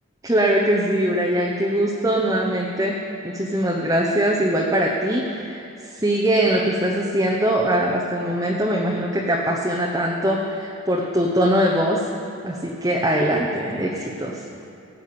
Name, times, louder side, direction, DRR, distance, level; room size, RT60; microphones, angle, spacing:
voice 1, 0.2-3.0 3.2-12.0 12.4-14.4, right 1 dB, 15° right, -2 dB, 0.9 m, -22 dB
18.0 x 6.4 x 8.7 m, 2.7 s
head